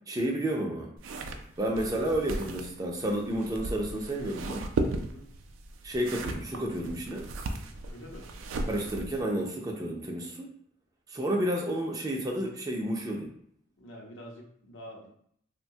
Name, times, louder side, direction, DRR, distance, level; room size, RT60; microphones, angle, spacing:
voice 1, 0.1-1.0 1.6-4.7 5.8-7.3 8.7-10.5 11.1-13.3, right 1 dB, 20° right, 0 dB, 0.4 m, -31 dB
sound 1, 1.0-9.2, right 2 dB, 85° right, 0.4 m, -36 dB
voice 2, 7.8-8.3 13.8-15.1, equal, 70° left, 0 dB, 0.7 m, -46 dB
3.0 x 2.1 x 2.7 m, 0.65 s
head